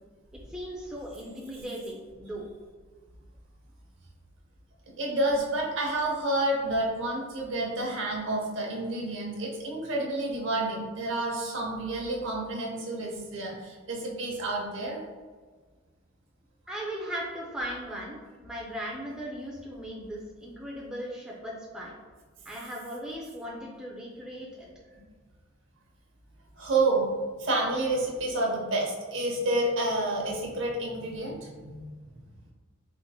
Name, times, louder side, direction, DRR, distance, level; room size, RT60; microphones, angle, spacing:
voice 1, 0.3-2.5 16.7-21.9 22.5-24.7, equal, 5° right, -4 dB, 0.4 m, -38 dB
voice 2, 4.9-15.0 26.5-27.1 27.4-31.9 32.1-32.2, right 2 dB, 65° right, -1 dB, 0.7 m, -29 dB
4.3 x 2.8 x 2.3 m, 1.5 s
head